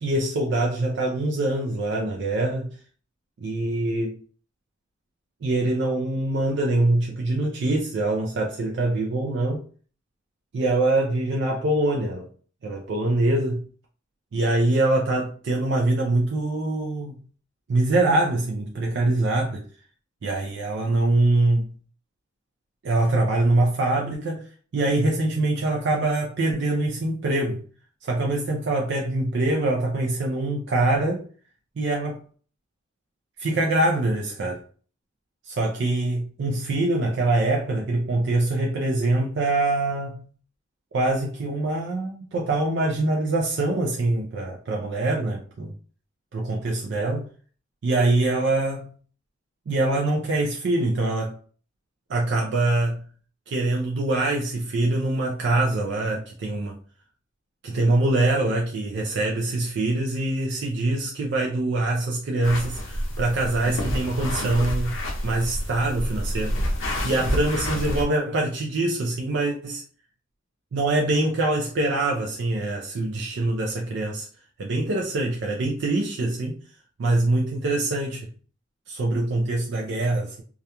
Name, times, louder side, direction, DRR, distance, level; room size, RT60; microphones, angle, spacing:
voice 1, 0.0-2.8 3.4-4.2 5.4-9.6 10.5-12.3 12.6-13.6 14.3-17.1 17.7-19.7 20.2-21.8 22.8-24.5 24.7-27.7 28.0-31.2 31.8-32.2 33.4-34.6 35.6-40.3 40.9-45.7 46.3-47.3 47.8-49.0 49.7-51.4 52.1-53.1 53.5-56.8 57.6-66.6 67.0-69.8 70.7-74.3 74.6-76.6 77.0-78.3 78.9-80.4, right 2 dB, 65° right, 0.4 m, -24 dB
sound 1, 62.4-68.0, equal, 80° left, 0.5 m, -28 dB
2.4 x 2.1 x 2.8 m
head